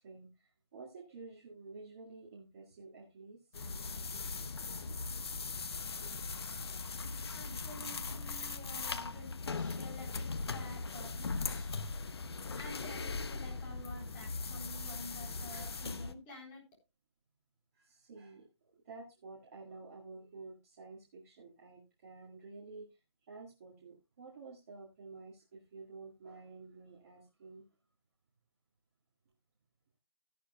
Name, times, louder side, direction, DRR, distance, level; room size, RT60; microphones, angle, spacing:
voice 1, 0.0-3.4 15.5-15.7 17.8-18.5 18.7-22.9 23.3-27.6, right 3 dB, 30° right, -3 dB, 2.0 m, -51 dB
sound 1, 3.5-16.1, left 4 dB, 60° left, 0.9 m, -39 dB
voice 2, 7.3-11.8 12.5-16.6, left 1 dB, 15° left, -2 dB, 4.2 m, -50 dB
13.5 x 11.5 x 2.3 m, 0.25 s
figure-of-eight pair, 160°, 15 cm